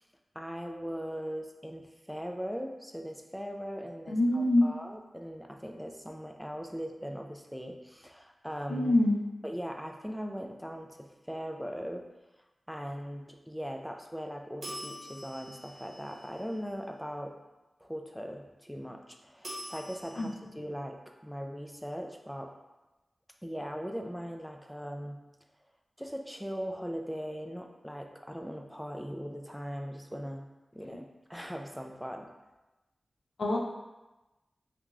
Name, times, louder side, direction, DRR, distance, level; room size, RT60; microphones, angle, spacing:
voice 1, 0.4-9.0 9.4-12.1 12.7-17.3 17.8-22.5 23.4-25.2 26.0-30.4 30.7-32.3, equal, ahead, 3 dB, 0.3 m, -39 dB
voice 2, 4.1-4.6 8.7-9.2 20.2-20.3 33.4-33.6, left 1 dB, 85° left, -1 dB, 0.4 m, -25 dB
sound 1, 14.6-16.8 19.4-20.3, equal, 65° right, 0.8 m, -45 dB
2.9 x 2.5 x 2.3 m, 1.1 s
cardioid pair, 45°, 0 cm